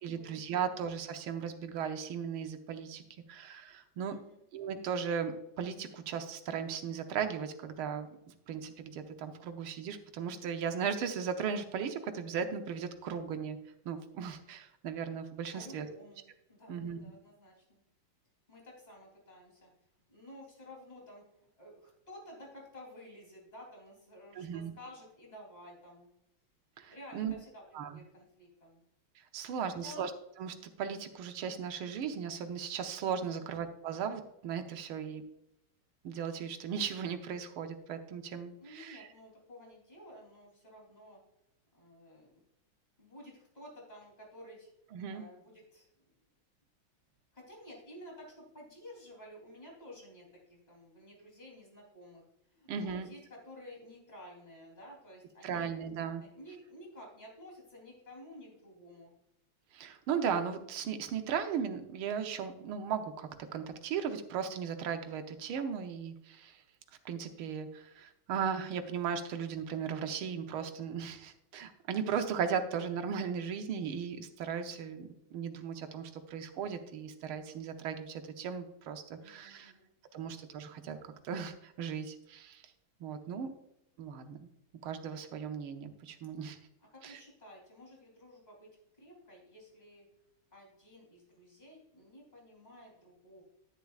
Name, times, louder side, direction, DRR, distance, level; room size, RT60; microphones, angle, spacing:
voice 1, 0.0-3.0 3.3-4.2 4.5-8.1 8.5-13.6 13.8-15.9 16.7-17.0 24.3-24.7 26.8-27.3 27.7-28.0 29.2-30.1 30.4-35.2 36.0-39.1 44.9-45.2 52.7-53.1 55.4-56.2 59.7-66.6 67.0-79.7 80.1-82.6 83.0-83.5 84.0-84.5 84.8-86.6 87.0-87.2, right 7 dB, 80° right, 7 dB, 1.7 m, -37 dB
voice 2, 4.1-4.4 15.5-17.8 18.5-19.7 20.1-21.2 21.6-26.1 26.9-28.8 29.8-30.1 33.3-33.6 38.6-41.2 41.7-42.4 43.0-44.7 45.1-45.9 47.3-52.2 52.5-55.7 56.2-59.1 79.2-80.4 86.9-88.7 89.0-90.0 90.5-93.4, left 1 dB, 20° left, -2 dB, 3.2 m, -52 dB
10.5 x 10.5 x 2.4 m, 0.83 s
omnidirectional pair, 2.3 m